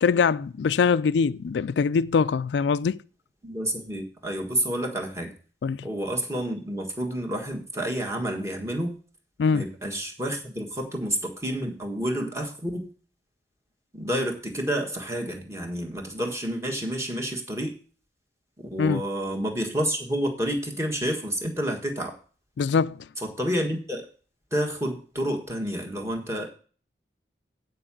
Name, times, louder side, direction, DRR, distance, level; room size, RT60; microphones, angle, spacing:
voice 1, 0.0-3.0 5.6-5.8 9.4-9.6 18.8-19.0 22.6-23.0, left 5 dB, 85° left, 0.4 m, -23 dB
voice 2, 3.4-5.3 5.8-8.9 9.5-12.9 13.9-17.7 18.7-22.2 23.2-24.0 24.5-26.5, equal, 15° right, 1.5 m, -29 dB
9.1 x 4.6 x 7.4 m
head